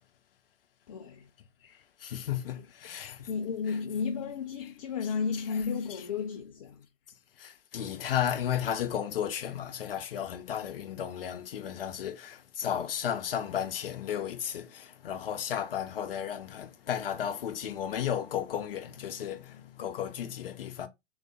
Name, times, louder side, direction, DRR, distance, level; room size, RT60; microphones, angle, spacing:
voice 1, 0.9-1.3 3.3-6.9, left 5 dB, 30° left, 0.4 m, -33 dB
voice 2, 1.6-3.3 3.7-3.8 4.6-4.7 5.3-5.4 5.9-6.0 7.4-20.9, left 9 dB, 50° left, 0.8 m, -34 dB
3.9 x 3.6 x 3.6 m
figure-of-eight pair, 115°, 36 cm